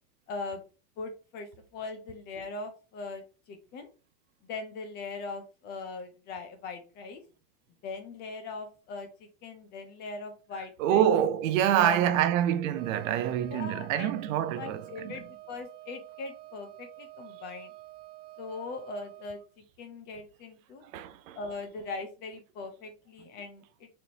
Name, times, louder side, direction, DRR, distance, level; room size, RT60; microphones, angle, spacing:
voice 1, 0.3-0.6 1.0-1.5 1.7-3.9 4.5-7.2 7.8-9.1 9.4-11.0 11.8-12.2 13.5-14.1 14.6-17.7 18.4-19.4 19.8-20.8 21.4-23.9, left 3 dB, 25° left, 0.4 m, -40 dB
voice 2, 10.8-15.1 20.9-21.4, right 11 dB, 60° right, 0.5 m, -26 dB
Wind instrument woodwind instrument, 12.7-19.5, right 16 dB, 75° right, 0.8 m, -49 dB
4.2 x 3.1 x 2.8 m
supercardioid pair, 145°, 46 cm